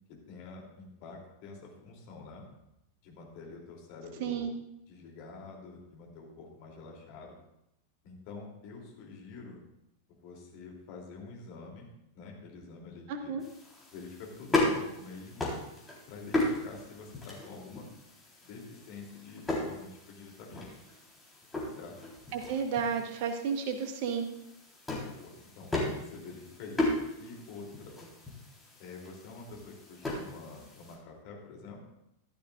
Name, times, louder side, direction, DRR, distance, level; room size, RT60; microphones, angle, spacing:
voice 1, 0.1-2.4 3.0-4.5 4.9-7.4 8.0-9.6 10.1-11.9 12.1-13.3 13.9-15.4 16.1-17.9 18.4-20.7 21.7-21.9 25.0-26.9 27.2-28.0 28.8-31.8, left 4 dB, 45° left, -1 dB, 3.3 m, -47 dB
voice 2, 4.2-4.5 13.1-13.4 22.3-24.3, right 6 dB, 50° right, 6 dB, 1.4 m, -32 dB
sound 1, 13.4-31.0, left 2 dB, 10° left, 4.1 m, -36 dB
15.0 x 12.0 x 2.6 m, 0.85 s
figure-of-eight pair, 90°, 0 cm